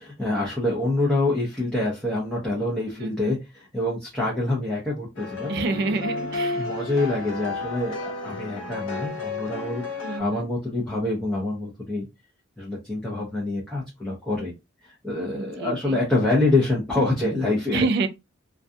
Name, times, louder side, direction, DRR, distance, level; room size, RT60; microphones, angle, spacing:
voice 1, 0.0-5.9 6.5-12.1 12.6-14.5 14.8-17.8, left 2 dB, 5° left, 0.6 m, -26 dB
voice 2, 3.0-3.4 5.5-6.6 10.0-10.5 15.4-16.0 17.7-18.1, right 3 dB, 55° right, 0.3 m, -28 dB
sound 1, 5.2-10.2, left 3 dB, 90° left, 0.6 m, -32 dB
2.4 x 2.3 x 2.6 m
head